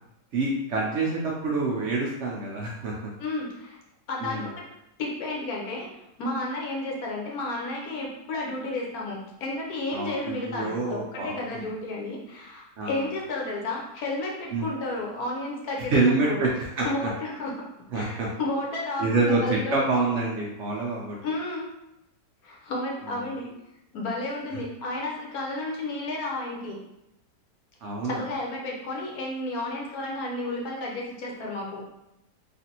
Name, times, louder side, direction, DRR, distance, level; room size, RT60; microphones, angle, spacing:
voice 1, 0.3-3.1 4.2-4.5 9.9-11.7 12.8-13.0 14.5-14.7 15.9-16.9 17.9-18.3 19.0-21.2 27.8-28.2, right 3 dB, 75° right, -3 dB, 0.6 m, -27 dB
voice 2, 3.2-3.8 4.1-4.6 5.0-5.9 6.2-16.4 16.8-17.5 17.9-20.1 21.2-21.6 22.4-23.5 23.9-26.8 28.0-31.8, left 2 dB, 70° left, -2 dB, 1.1 m, -32 dB
3.2 x 2.5 x 2.8 m, 0.88 s
omnidirectional pair, 1.7 m